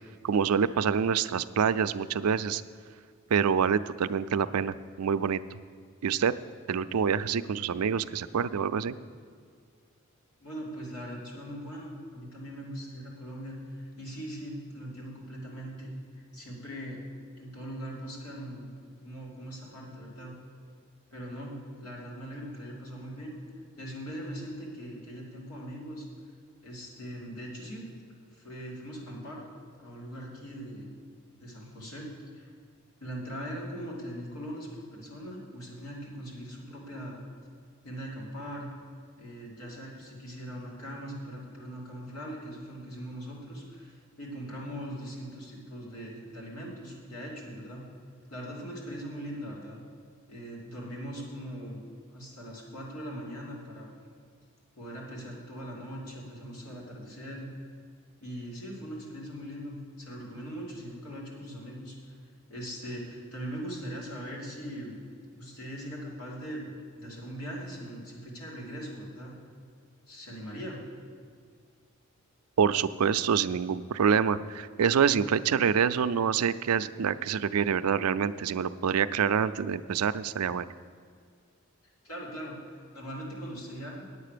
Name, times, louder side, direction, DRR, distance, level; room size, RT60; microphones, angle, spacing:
voice 1, 0.2-2.6 3.3-5.4 6.0-6.3 6.7-9.0 72.6-80.7, right 7 dB, 85° right, 13 dB, 0.4 m, -26 dB
voice 2, 10.4-15.9 16.3-17.0 17.4-18.7 19.0-20.3 21.1-23.4 23.8-26.1 26.6-27.9 28.3-29.4 29.8-30.9 31.4-32.1 32.3-32.5 33.0-37.2 37.8-38.7 39.2-47.8 48.3-49.8 50.3-51.8 52.1-53.9 54.7-57.5 58.2-62.2 62.5-65.0 65.3-66.7 67.0-69.3 70.1-70.8 82.0-82.6 82.9-84.0, equal, 85° left, -3 dB, 3.1 m, -40 dB
9.7 x 8.3 x 6.7 m, 2.1 s
head